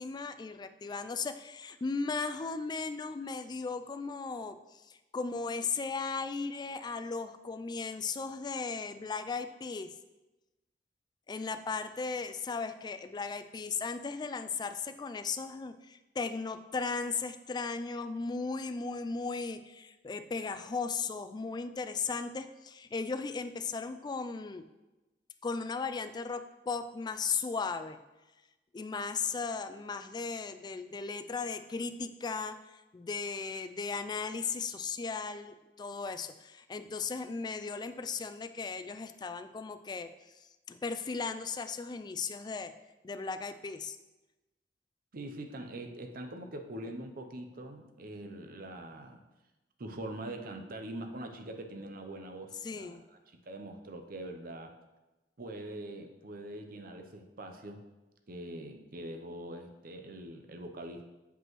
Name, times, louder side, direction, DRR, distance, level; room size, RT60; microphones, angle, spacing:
voice 1, 0.0-4.6 4.9-9.9 11.3-24.6 25.4-28.0 28.7-40.1 40.4-42.7 43.0-44.0 52.6-53.0, left 4 dB, 25° left, 10 dB, 0.3 m, -36 dB
voice 2, 45.1-49.2 49.8-53.0 53.3-54.7 55.4-57.8 58.3-61.1, right 1 dB, 55° right, 5 dB, 0.7 m, -43 dB
7.8 x 5.2 x 3.1 m, 1.1 s
head